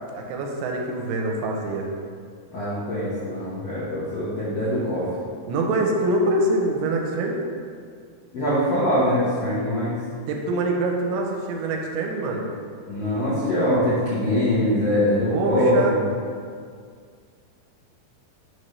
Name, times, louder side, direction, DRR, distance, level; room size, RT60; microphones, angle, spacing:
voice 1, 0.1-1.9 5.5-7.4 10.3-12.5 15.3-15.9, right 2 dB, 85° right, 1 dB, 2.6 m, -24 dB
voice 2, 2.5-5.1 8.3-10.0 12.9-16.0, left 1 dB, 70° left, -11 dB, 1.4 m, -23 dB
6.2 x 3.3 x 5.3 m, 2.1 s
omnidirectional pair, 4.5 m